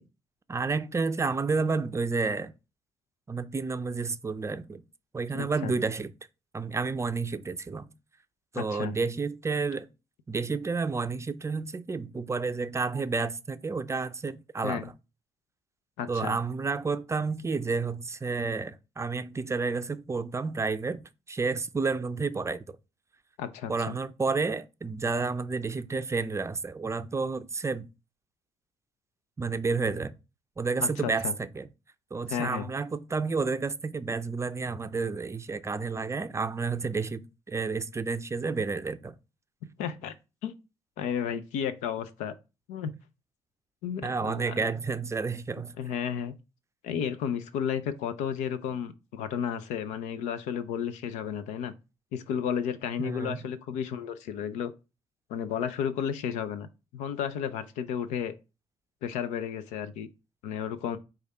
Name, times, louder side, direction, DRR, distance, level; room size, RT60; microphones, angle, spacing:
voice 1, 0.5-2.5 3.3-4.8 5.1-6.1 6.5-7.9 8.5-9.9 10.3-14.9 16.1-21.0 21.3-22.8 23.7-27.9 29.4-30.1 30.6-31.7 32.1-39.2 44.0-45.7 53.0-53.4, right 4 dB, 25° right, 0.4 m, -30 dB
voice 2, 5.3-5.7 8.6-9.0 14.6-14.9 16.0-16.4 23.4-24.0 30.8-31.3 32.3-32.7 39.8-40.1 40.4-40.5 41.0-42.3 42.7-42.9 43.8-44.7 45.8-46.4 46.8-51.7 52.1-54.7 55.3-58.3 59.0-60.1 60.4-61.0, left 8 dB, 80° left, 0.5 m, -33 dB
4.8 x 2.3 x 4.2 m
supercardioid pair, 55°, 12 cm